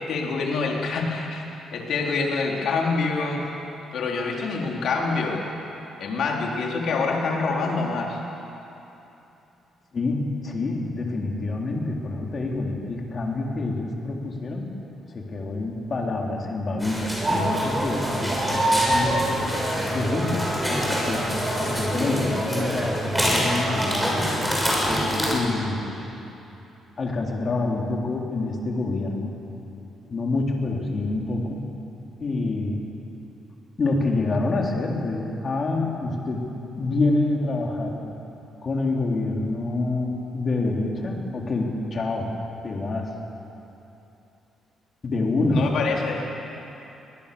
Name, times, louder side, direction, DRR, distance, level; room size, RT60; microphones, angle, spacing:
voice 1, 0.0-3.4 3.9-5.4 6.0-8.2 45.5-46.2, left 4 dB, 70° left, -1 dB, 3.9 m, -26 dB
voice 2, 9.9-14.7 15.1-19.3 19.9-20.5 20.9-21.2 21.5-24.3 25.3-26.0 27.0-29.3 30.0-31.6 32.2-32.8 33.8-36.5 36.7-38.1 38.6-42.3 42.6-43.1 45.0-45.7, left 2 dB, 40° left, 0 dB, 3.7 m, -27 dB
sound 1, 16.8-25.3, equal, ahead, 6.5 m, -26 dB
sound 2, 17.2-24.1, right 1 dB, 25° right, 7.0 m, -28 dB
22.5 x 19.5 x 7.0 m, 2.9 s
cardioid pair, 90°, 0 cm